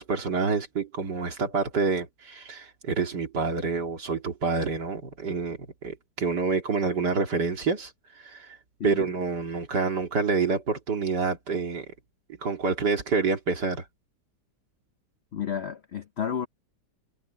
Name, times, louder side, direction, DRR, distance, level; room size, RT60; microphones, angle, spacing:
voice 1, 0.0-7.9 8.2-8.6 8.8-11.9 12.4-13.9, right 4 dB, 70° right, 3.1 m, -27 dB
voice 2, 15.3-16.5, left 8 dB, 60° left, 0.6 m, -31 dB
omnidirectional pair, 1.9 m